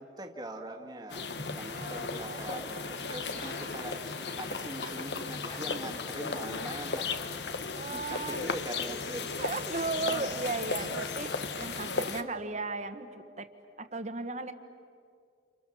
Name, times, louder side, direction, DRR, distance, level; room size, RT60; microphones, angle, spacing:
voice 1, 0.0-4.0 4.3-7.1 7.9-9.4 10.8-10.9 12.2-12.4, right 1 dB, 25° right, 3 dB, 1.7 m, -42 dB
sound 1, 1.1-12.2, left 4 dB, 75° left, 1.2 m, -36 dB
sound 2, 1.3-9.3, left 1 dB, 50° left, 5.8 m, -47 dB
voice 2, 1.6-2.4 7.8-8.4 9.4-11.3 11.6-13.5 13.8-14.5, right 3 dB, 40° right, 9 dB, 1.4 m, -36 dB
29.5 x 28.5 x 7.1 m, 2.3 s
head